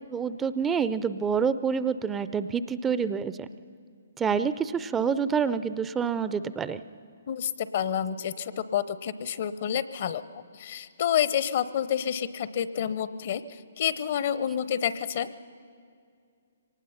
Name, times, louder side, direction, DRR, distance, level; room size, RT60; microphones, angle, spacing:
voice 1, 0.1-3.5 4.2-6.8, right 6 dB, 15° right, 13 dB, 0.5 m, -27 dB
voice 2, 7.3-10.2 10.5-13.4 13.8-15.3, left 9 dB, 50° left, 15 dB, 0.7 m, -28 dB
24.0 x 19.0 x 5.7 m, 2.3 s
figure-of-eight pair, 135°, 0 cm